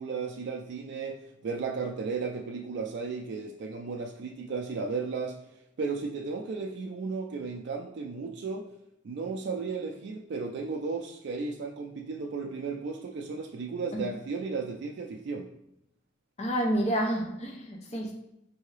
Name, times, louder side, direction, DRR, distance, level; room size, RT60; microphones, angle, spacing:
voice 1, 0.0-5.4 5.8-8.6 9.0-15.5, right 4 dB, 60° right, 2 dB, 0.3 m, -34 dB
voice 2, 16.4-18.1, right 1 dB, 35° left, 0 dB, 0.6 m, -29 dB
4.6 x 2.7 x 3.1 m, 0.81 s
head